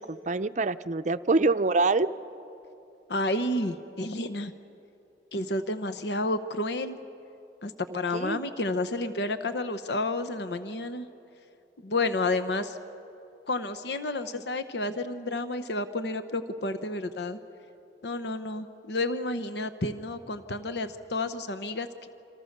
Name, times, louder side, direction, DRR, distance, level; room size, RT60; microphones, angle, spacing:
voice 1, 0.0-2.1 8.1-8.4, right 3 dB, 45° right, 11 dB, 0.6 m, -25 dB
voice 2, 3.1-4.5 5.3-7.0 7.6-11.1 11.8-12.8 13.5-17.4 18.0-22.1, left 2 dB, 70° left, 11 dB, 0.9 m, -30 dB
27.5 x 27.5 x 6.7 m, 2.8 s
head